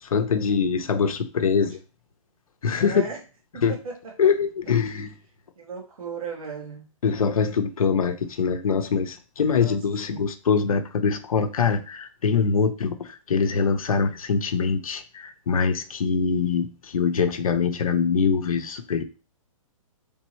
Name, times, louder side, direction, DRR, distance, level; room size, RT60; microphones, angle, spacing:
voice 1, 0.0-1.8 2.6-3.1 3.6-3.8 4.2-5.1 7.0-19.0, left 5 dB, 90° left, 7 dB, 0.7 m, -23 dB
voice 2, 2.8-3.2 3.5-4.1 5.5-6.9 9.6-9.8 10.1-10.2, right 6 dB, 80° right, 0 dB, 1.8 m, -36 dB
4.4 x 3.5 x 3.1 m, 0.34 s
hypercardioid pair, 145°, 18 cm